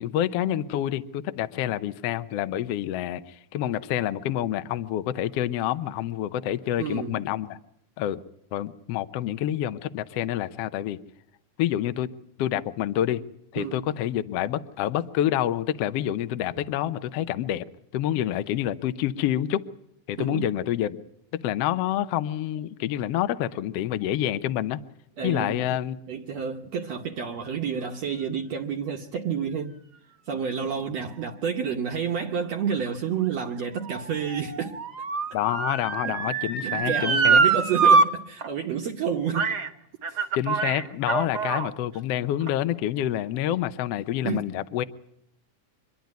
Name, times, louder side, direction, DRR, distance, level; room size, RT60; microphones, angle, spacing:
voice 1, 0.0-7.6 8.0-8.2 8.5-11.0 11.6-12.1 12.4-13.2 13.5-17.6 17.9-19.6 20.1-21.0 21.3-24.8 25.2-26.0 35.3-37.4 40.3-44.8, left 12 dB, 70° left, 1.6 m, -27 dB
voice 2, 6.8-7.2 13.6-13.9 20.2-20.5 25.2-25.7 26.1-29.8 30.3-34.8 36.0-36.2 36.6-39.5 40.1-40.3 44.2-44.5, right 7 dB, 65° right, 2.0 m, -30 dB
Motor vehicle (road) / Siren, 32.9-38.1 38.4-38.5 39.3-39.7 40.0-41.7 42.4-42.5, right 4 dB, 40° right, 1.6 m, -24 dB
26.5 x 11.0 x 9.4 m
omnidirectional pair, 3.6 m